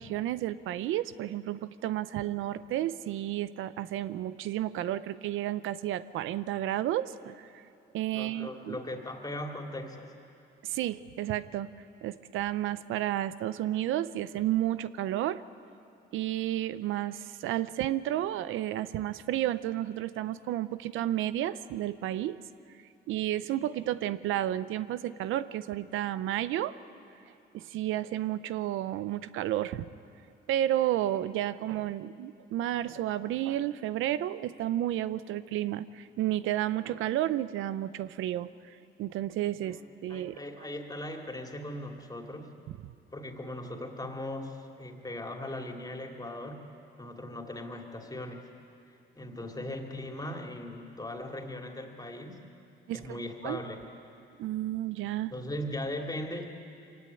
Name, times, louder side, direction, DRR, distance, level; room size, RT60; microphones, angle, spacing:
voice 1, 0.0-7.6 7.9-8.8 10.6-11.7 12.0-15.4 16.1-22.4 23.1-26.8 27.5-29.8 30.5-38.5 39.0-40.4 42.7-42.9 52.9-53.6 54.4-55.3, right 13 dB, 85° right, 14 dB, 0.6 m, -31 dB
voice 2, 8.1-10.1 39.6-39.8 40.1-42.5 43.1-46.6 47.0-48.5 49.1-52.4 52.9-53.9 55.3-56.5, left 1 dB, 20° left, 2 dB, 2.9 m, -39 dB
23.5 x 16.5 x 9.6 m, 2.6 s
cardioid pair, 90°, 20 cm